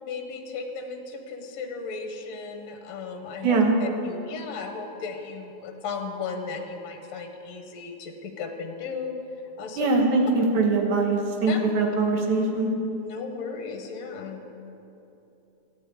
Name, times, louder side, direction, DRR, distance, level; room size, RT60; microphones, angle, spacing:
voice 1, 0.0-9.1 9.6-9.9 11.5-11.6 13.0-14.5, left 5 dB, 65° left, 5 dB, 2.2 m, -35 dB
voice 2, 3.4-3.7 9.8-12.7, right 3 dB, 80° right, 1 dB, 3.0 m, -22 dB
13.5 x 10.0 x 8.6 m, 2.9 s
omnidirectional pair, 3.4 m